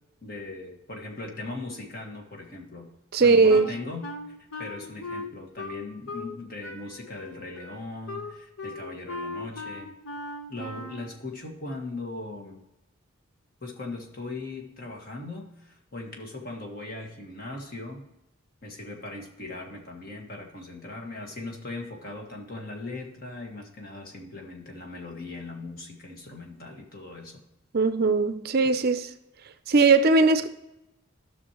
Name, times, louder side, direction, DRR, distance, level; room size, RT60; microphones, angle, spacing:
voice 1, 0.2-2.9 3.2-4.1 4.6-10.0 10.5-12.6 13.6-18.0 18.6-27.4, left 2 dB, 45° left, 1.7 m, -39 dB
voice 2, 3.1-3.7 27.7-29.1 29.7-30.5, right 3 dB, 45° right, 0.5 m, -19 dB
Wind instrument woodwind instrument, 3.5-6.4 6.6-11.1, left 2 dB, 75° left, 1.0 m, -38 dB
13.5 x 6.3 x 3.0 m
head